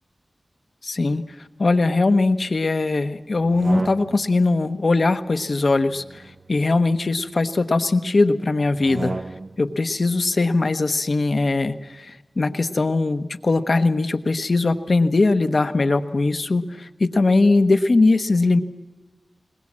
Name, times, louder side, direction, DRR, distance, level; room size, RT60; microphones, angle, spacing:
voice 1, 0.8-1.2 1.6-6.2 6.5-9.2 9.6-18.6, left 3 dB, 60° left, 9 dB, 1.0 m, -20 dB
sound 1, 3.4-4.4 5.7-7.4 8.7-9.7, right 2 dB, 50° right, 0.6 m, -33 dB
21.0 x 20.5 x 7.4 m, 1.2 s
wide cardioid pair, 80°, 0 cm